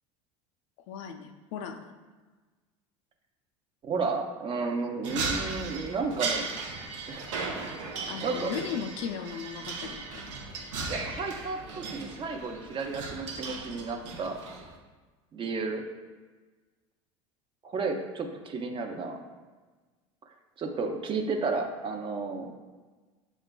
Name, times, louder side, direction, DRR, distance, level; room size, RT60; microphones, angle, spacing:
voice 1, 0.9-2.0 8.1-10.4, left 6 dB, 75° left, 7 dB, 0.4 m, -37 dB
voice 2, 3.8-6.5 7.1-7.3 8.2-8.5 10.9-14.4 15.3-15.8 17.6-19.2 20.6-22.5, right 4 dB, 35° right, 4 dB, 0.5 m, -32 dB
sound 1, 5.0-14.8, right 4 dB, 85° right, 0.5 m, -36 dB
6.5 x 2.3 x 2.2 m, 1.3 s
supercardioid pair, 95°, 16 cm